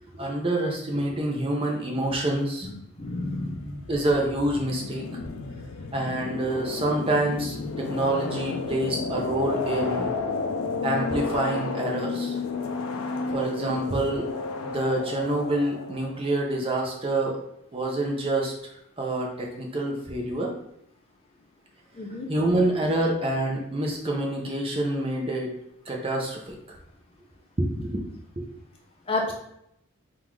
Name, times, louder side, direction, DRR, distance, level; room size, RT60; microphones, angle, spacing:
voice 1, 0.1-2.7 3.9-5.1 5.9-10.1 10.8-12.4 13.3-14.3 14.6-17.4 17.7-18.7 19.0-20.5 22.3-25.5 25.9-26.5 27.6-28.0 28.4-28.5, right 1 dB, 25° right, 0 dB, 0.6 m, -27 dB
sound 1, 3.0-16.4, left 4 dB, 75° left, 0.4 m, -32 dB
voice 2, 3.0-3.8 21.9-22.3 29.1-29.3, left 2 dB, 25° left, -1 dB, 0.6 m, -30 dB
3.8 x 2.5 x 4.5 m, 0.76 s
head